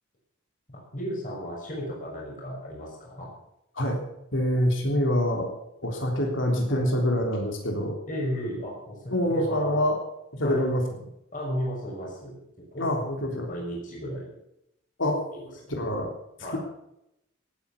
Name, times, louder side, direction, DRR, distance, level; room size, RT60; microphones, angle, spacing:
voice 1, 0.7-3.3 6.7-6.9 8.0-9.8 10.4-10.7 11.3-12.4 12.7-12.9 13.5-14.2 15.3-15.7 16.4-16.6, equal, 45° left, -3 dB, 6.2 m, -34 dB
voice 2, 4.3-5.5 5.8-7.9 9.1-10.0 10.3-10.8 12.8-13.5 15.0-15.2 15.7-16.1, left 1 dB, 70° left, 1 dB, 3.5 m, -25 dB
18.0 x 9.1 x 7.1 m, 0.82 s
head